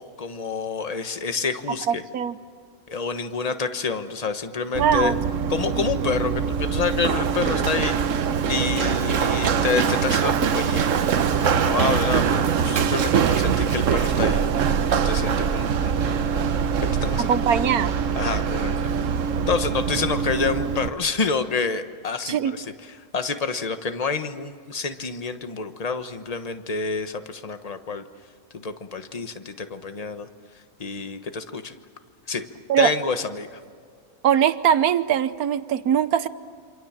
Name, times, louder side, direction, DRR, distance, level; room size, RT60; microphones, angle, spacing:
voice 1, 0.0-2.0 2.9-5.1 5.5-8.0 8.5-10.9 11.4-16.5 17.0-17.6 18.2-18.7 19.5-22.7 23.1-28.0 28.5-30.3 30.8-31.7 32.3-32.4 32.8-33.6, left 4 dB, 30° left, 9 dB, 1.2 m, -28 dB
voice 2, 1.9-2.4 4.8-5.2 17.2-18.0 22.3-22.5 32.7-32.9 34.2-36.3, right 9 dB, 85° right, 13 dB, 1.4 m, -21 dB
Run, 4.7-20.9, right 7 dB, 65° right, 1.2 m, -23 dB
28.0 x 26.5 x 7.4 m, 2.1 s
omnidirectional pair, 1.5 m